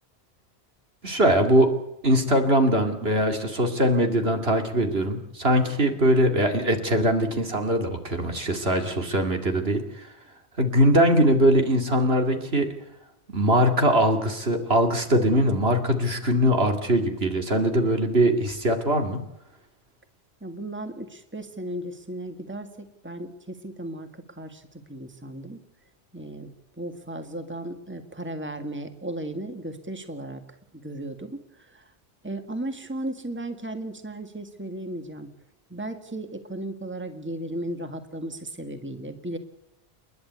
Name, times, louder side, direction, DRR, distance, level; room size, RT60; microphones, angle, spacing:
voice 1, 1.0-1.7 2.0-10.1 10.6-12.7 13.3-19.2, right 1 dB, 70° right, 5 dB, 2.8 m, -21 dB
voice 2, 20.4-25.6 26.1-26.5 26.8-30.4 30.8-31.9 32.2-35.3 35.7-39.4, right 1 dB, 10° right, 7 dB, 1.8 m, -35 dB
29.5 x 11.0 x 8.2 m, 0.89 s
omnidirectional pair, 1.1 m